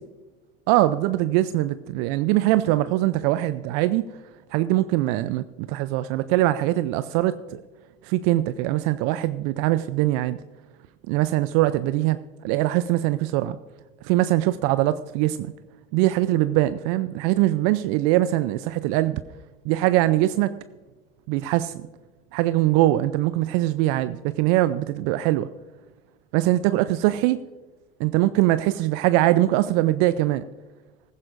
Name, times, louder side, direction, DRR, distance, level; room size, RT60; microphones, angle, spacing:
voice 1, 0.7-4.1 4.5-7.6 8.0-10.4 11.1-12.2 12.4-13.6 14.0-15.5 15.9-19.2 19.7-20.5 21.3-21.9 22.3-25.5 26.3-27.4 28.0-30.4, right 15 dB, 60° right, 13 dB, 0.5 m, -22 dB
15.0 x 15.0 x 2.5 m, 1.2 s
hypercardioid pair, 75°, 30 cm